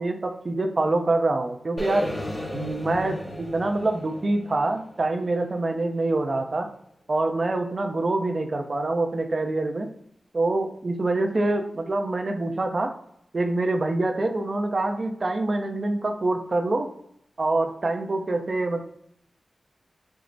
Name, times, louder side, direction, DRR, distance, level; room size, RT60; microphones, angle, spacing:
voice 1, 0.0-2.1 2.5-6.7 7.1-9.9 10.3-12.9 13.3-16.9 17.4-18.8, right 2 dB, 50° right, 5 dB, 0.6 m, -25 dB
sound 1, 1.8-5.8, left 1 dB, 20° left, 0.9 m, -35 dB
4.6 x 2.1 x 3.9 m, 0.73 s
cardioid pair, 45°, 0 cm